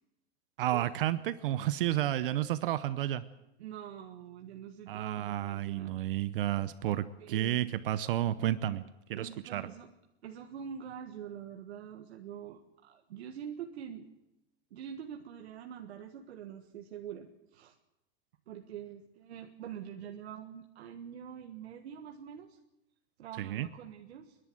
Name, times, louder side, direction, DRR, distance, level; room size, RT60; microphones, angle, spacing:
voice 1, 0.6-3.2 4.9-8.8 9.1-9.7 23.4-23.7, right 13 dB, 55° right, 14 dB, 0.8 m, -31 dB
voice 2, 3.6-6.1 7.2-7.6 9.1-9.9 10.2-14.1 14.7-17.7 18.5-22.6 23.2-24.4, right 8 dB, 80° right, 3 dB, 1.6 m, -45 dB
29.5 x 11.5 x 7.8 m, 0.91 s
supercardioid pair, 175°, 32 cm